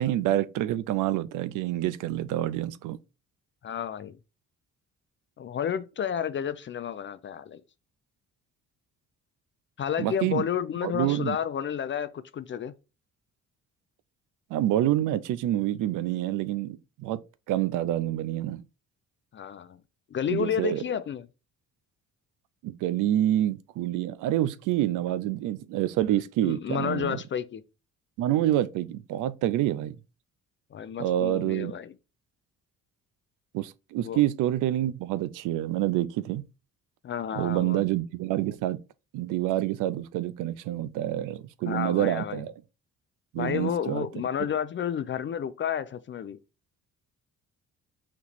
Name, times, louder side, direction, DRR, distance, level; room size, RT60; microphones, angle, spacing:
voice 1, 0.0-3.0 10.0-10.4 10.8-11.4 14.5-17.2 17.5-18.6 20.3-20.8 22.6-27.2 28.2-30.0 31.0-31.7 33.5-36.4 37.3-38.8 39.1-42.5 43.3-44.1, right 13 dB, 90° right, 0.5 m, -27 dB
voice 2, 3.6-4.2 5.4-7.6 9.8-12.7 19.3-19.8 20.1-21.3 26.4-27.6 30.7-31.9 34.0-34.2 37.0-37.8 41.7-42.4 43.4-46.4, left 8 dB, 40° left, 0.4 m, -31 dB
4.2 x 3.0 x 4.2 m
cardioid pair, 90°, 30 cm